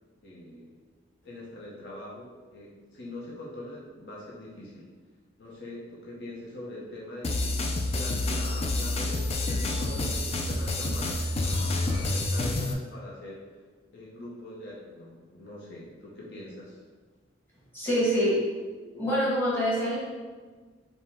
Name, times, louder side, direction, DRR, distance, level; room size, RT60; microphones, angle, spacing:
voice 1, 0.2-0.7 1.2-4.9 5.4-7.6 7.9-13.4 13.9-16.8, left 1 dB, 65° left, -5 dB, 0.9 m, -42 dB
sound 1, 7.2-12.7, left 2 dB, 35° left, 0.4 m, -28 dB
voice 2, 17.7-18.4 18.9-20.0, equal, 10° left, -8 dB, 1.3 m, -25 dB
5.2 x 2.2 x 3.5 m, 1.4 s
head